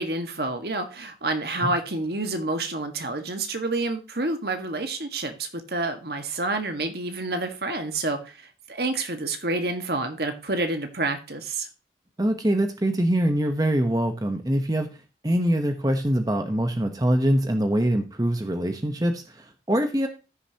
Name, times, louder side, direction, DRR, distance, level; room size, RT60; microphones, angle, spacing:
voice 1, 0.0-11.7, right 2 dB, 60° right, 1.7 m, -28 dB
voice 2, 12.2-14.9 15.2-20.1, right 1 dB, 20° right, 1.0 m, -24 dB
14.0 x 6.9 x 2.9 m
head